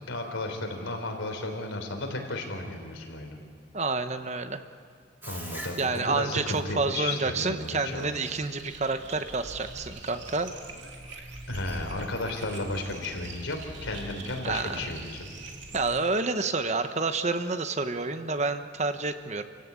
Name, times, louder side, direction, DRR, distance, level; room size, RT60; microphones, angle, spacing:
voice 1, 0.1-3.4 5.2-8.1 11.5-15.3, left 2 dB, 85° left, 3 dB, 3.9 m, -34 dB
voice 2, 3.7-4.6 5.8-10.5 14.4-14.9 15.7-19.5, right 3 dB, 35° right, 9 dB, 0.9 m, -29 dB
Bathtub (filling or washing), 5.2-10.6, right 1 dB, 10° right, 3.0 m, -46 dB
sound 1, 7.6-16.0, right 2 dB, 70° right, 2.8 m, -43 dB
28.5 x 16.5 x 8.4 m, 2.2 s
head